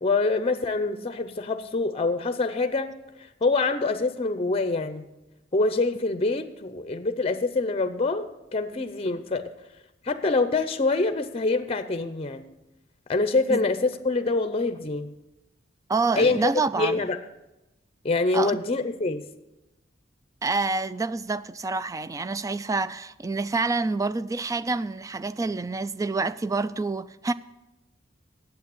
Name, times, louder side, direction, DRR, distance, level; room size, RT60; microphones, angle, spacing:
voice 1, 0.0-2.9 3.2-5.1 5.5-9.5 10.0-12.5 13.1-15.1 16.2-16.5 16.8-17.2 18.0-19.2, left 3 dB, 30° left, 0.6 m, -25 dB
voice 2, 15.9-17.1 18.3-18.6 20.4-27.3, right 3 dB, 15° right, 0.3 m, -27 dB
8.6 x 8.1 x 8.3 m
head